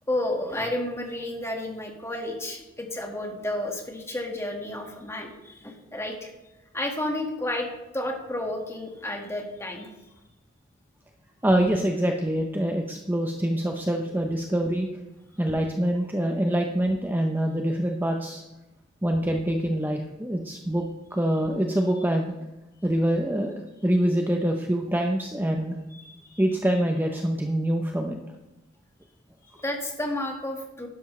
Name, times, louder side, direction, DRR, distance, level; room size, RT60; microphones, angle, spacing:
voice 1, 0.1-6.3 6.7-7.7 7.9-9.9 26.0-26.4 29.5-30.9, left 1 dB, 15° left, 2 dB, 1.7 m, -31 dB
voice 2, 11.4-14.9 15.4-18.4 19.0-22.3 22.8-25.8 26.4-28.2, right 1 dB, 10° right, 3 dB, 0.7 m, -25 dB
12.0 x 10.5 x 3.2 m, 0.98 s
head